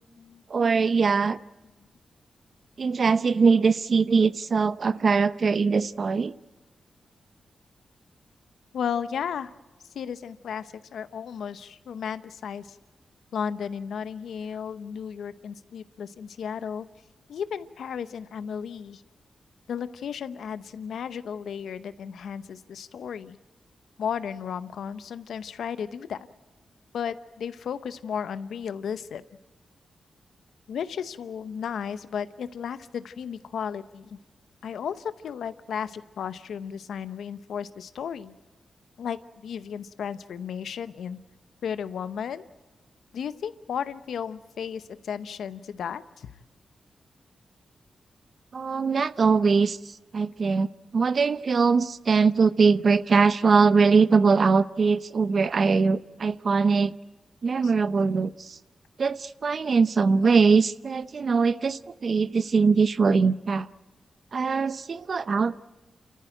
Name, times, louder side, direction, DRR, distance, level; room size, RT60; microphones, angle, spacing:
voice 1, 0.5-1.4 2.8-6.3 48.5-49.8 50.1-56.9 57.4-58.6 59.0-63.7 64.3-65.6, right 5 dB, 60° right, 0.7 m, -22 dB
voice 2, 8.7-9.5 9.9-12.8 13.3-16.9 17.3-19.0 19.7-23.4 24.0-26.3 26.9-29.2 30.7-34.2 34.6-38.3 39.0-41.2 41.6-42.4 43.1-46.3 57.6-57.7, left 7 dB, 85° left, 0.8 m, -34 dB
29.0 x 14.0 x 9.0 m
cardioid pair, 50°, 0 cm